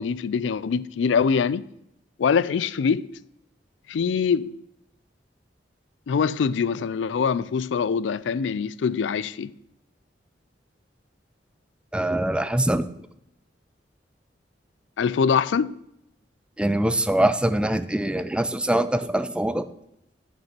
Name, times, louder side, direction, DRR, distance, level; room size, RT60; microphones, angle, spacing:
voice 1, 0.0-1.7 2.2-3.1 3.9-4.5 6.1-9.5 15.0-15.7, left 6 dB, 85° left, 0.4 m, -23 dB
voice 2, 11.9-12.9 16.6-19.7, right 1 dB, 5° right, 0.4 m, -23 dB
8.6 x 5.4 x 5.9 m
head